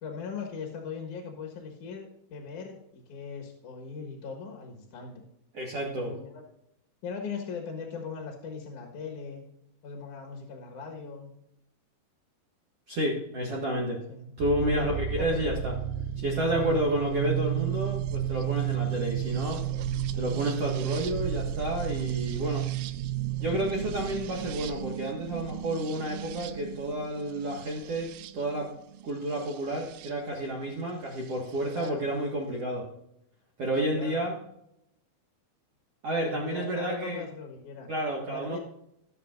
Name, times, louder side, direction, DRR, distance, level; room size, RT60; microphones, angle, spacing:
voice 1, 0.0-5.2 5.9-6.4 7.0-9.4 9.8-11.3 14.1-15.7 16.5-16.8 19.6-19.7 23.7-23.9 31.7-32.1 33.8-34.2 36.2-37.9 38.3-38.6, left 5 dB, 60° left, 2 dB, 2.7 m, -39 dB
voice 2, 5.5-6.1 12.9-14.0 14.4-15.7 16.2-19.6 20.1-22.7 23.4-28.7 29.0-32.9 33.6-34.3 36.0-37.2 37.9-38.6, right 1 dB, 50° right, -2 dB, 2.2 m, -30 dB
sound 1, 14.4-30.1 31.3-31.9, right 11 dB, 80° right, 2.1 m, -33 dB
19.0 x 7.0 x 2.6 m, 0.78 s
omnidirectional pair, 4.4 m